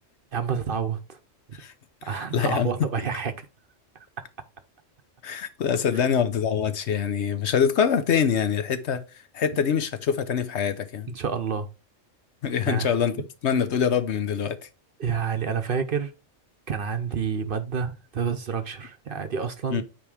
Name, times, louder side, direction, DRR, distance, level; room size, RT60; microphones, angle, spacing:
voice 1, 0.3-1.2 2.0-3.5 4.2-4.3 5.9-6.1 11.1-11.7 12.7-12.9 15.0-16.1 16.7-19.8, right 6 dB, 50° right, 0.8 m, -29 dB
voice 2, 2.0-2.7 5.2-9.0 9.3-11.1 12.4-14.7 19.7-19.8, left 7 dB, 65° left, 1.0 m, -25 dB
8.8 x 3.1 x 4.8 m
omnidirectional pair, 1.3 m